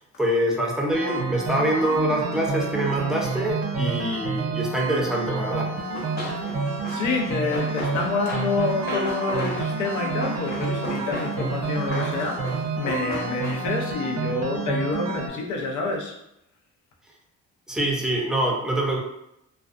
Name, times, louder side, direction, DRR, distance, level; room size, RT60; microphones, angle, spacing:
voice 1, 0.0-5.7 17.7-19.0, right 1 dB, ahead, -2 dB, 0.5 m, -25 dB
sound 1, 0.9-15.3, right 4 dB, 55° right, 0.5 m, -29 dB
Run, 5.8-13.9, left 1 dB, 35° left, 0.9 m, -35 dB
voice 2, 6.9-16.2, left 3 dB, 75° left, 1 dB, 0.6 m, -28 dB
2.4 x 2.2 x 2.4 m, 0.82 s
cardioid pair, 90°, 30 cm